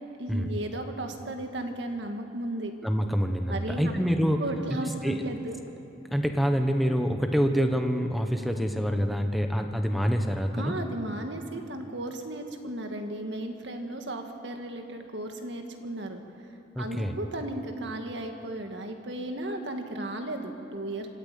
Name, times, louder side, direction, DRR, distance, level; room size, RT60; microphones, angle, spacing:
voice 1, 0.2-2.7 3.5-3.9 4.4-5.6 10.5-16.2 16.8-21.1, right 1 dB, 60° right, 4 dB, 2.0 m, -35 dB
voice 2, 2.8-4.4 5.0-5.2 6.1-10.7 16.7-17.2, equal, ahead, 5 dB, 1.2 m, -26 dB
26.0 x 14.0 x 8.6 m, 2.8 s
head